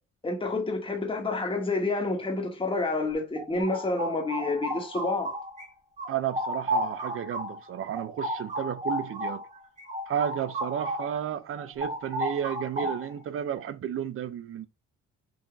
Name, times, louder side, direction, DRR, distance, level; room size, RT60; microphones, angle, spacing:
voice 1, 0.2-5.3, left 3 dB, 15° left, 1.1 m, -29 dB
sound 1, 3.1-5.7 6.0-11.2 11.5-13.2, equal, 25° right, 1.3 m, -33 dB
voice 2, 6.1-9.4 10.1-14.7, right 9 dB, 45° right, 0.4 m, -32 dB
3.8 x 2.6 x 3.2 m
cardioid pair, 90°, 30 cm